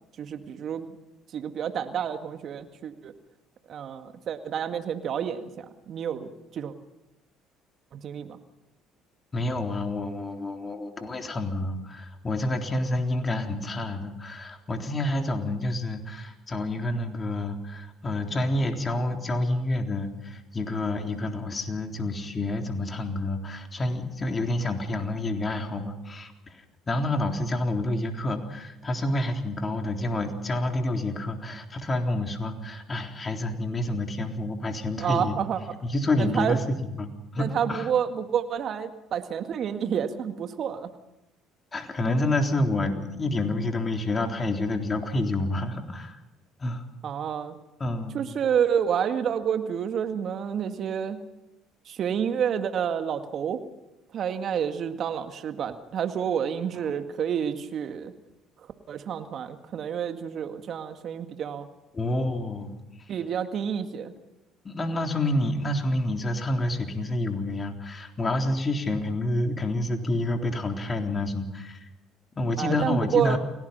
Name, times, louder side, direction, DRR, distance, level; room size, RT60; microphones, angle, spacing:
voice 1, 0.2-1.0 1.3-3.1 3.7-6.7 7.9-8.4 35.0-35.6 36.2-36.6 37.4-40.9 47.0-47.6 48.1-51.2 51.9-53.6 54.1-58.1 58.9-61.7 63.1-64.1 72.6-73.4, right 8 dB, 55° right, 8 dB, 2.0 m, -29 dB
voice 2, 9.3-35.4 35.8-37.9 41.7-46.2 46.6-46.9 47.8-48.2 61.9-62.8 64.6-71.9 72.4-73.4, left 1 dB, 30° left, 4 dB, 3.8 m, -28 dB
29.0 x 18.0 x 5.7 m, 0.93 s
hypercardioid pair, 60°, 0 cm